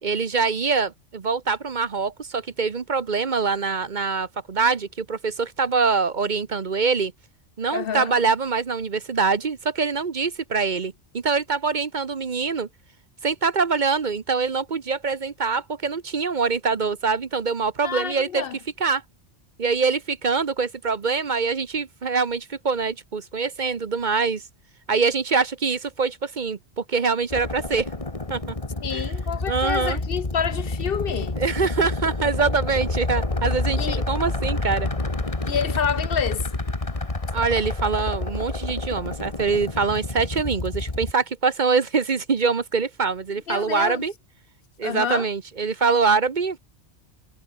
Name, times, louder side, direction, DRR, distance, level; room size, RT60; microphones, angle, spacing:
voice 1, 0.0-7.1 7.6-12.7 13.2-18.4 18.8-19.0 19.6-24.4 24.9-27.9 28.3-28.5 28.9-29.1 29.5-30.0 31.4-33.8 34.1-34.9 37.3-44.1 44.8-46.6, right 4 dB, 45° right, 1.0 m, -24 dB
voice 2, 7.7-8.1 17.8-18.6 28.8-31.4 33.8-34.0 35.5-36.5 43.5-44.0 44.8-45.3, left 7 dB, 60° left, 0.8 m, -28 dB
sound 1, 27.3-41.1, left 2 dB, 30° left, 2.1 m, -28 dB
omnidirectional pair, 1.2 m